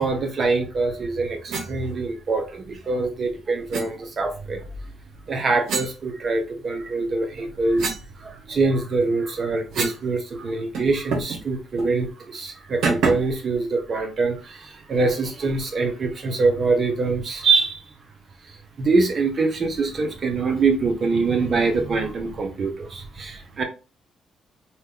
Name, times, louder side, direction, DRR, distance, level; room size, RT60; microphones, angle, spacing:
voice 1, 0.0-4.6 5.3-7.9 8.2-17.8 18.5-23.6, right 3 dB, 45° right, 0.7 m, -24 dB
sound 1, 1.5-1.7 3.7-3.9 5.7-6.7 7.2-10.1 10.3-10.4 10.7-11.4 11.8-11.9 12.8-13.4, right 4 dB, 80° right, 0.9 m, -29 dB
2.8 x 2.3 x 3.5 m
cardioid pair, 90°, 0 cm